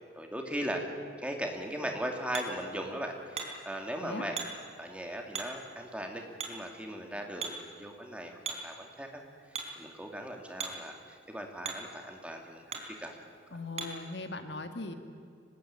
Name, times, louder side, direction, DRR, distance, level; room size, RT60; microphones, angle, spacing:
voice 1, 0.1-0.8 1.2-4.4 4.8-13.1, equal, 5° right, 2 dB, 2.6 m, -38 dB
Hammer, 1.5-14.1, right 4 dB, 35° right, 3.8 m, -44 dB
voice 2, 13.5-14.9, left 2 dB, 70° left, 7 dB, 1.9 m, -39 dB
25.0 x 20.0 x 9.0 m, 2.4 s
head